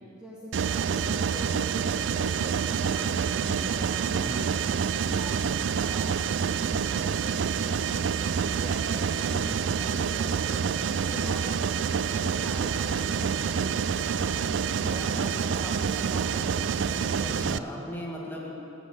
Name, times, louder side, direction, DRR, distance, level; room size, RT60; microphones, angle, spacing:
voice 1, 0.1-4.1 4.5-8.0 8.3-10.8 11.1-13.8 14.2-17.9, equal, 5° right, -7 dB, 1.3 m, -43 dB
Mechanisms, 0.5-17.6, right 6 dB, 65° right, 0.3 m, -27 dB
voice 2, 9.3-9.7 12.1-12.4 17.2-18.5, equal, 10° left, -3 dB, 2.0 m, -38 dB
14.0 x 7.4 x 8.6 m, 2.9 s
head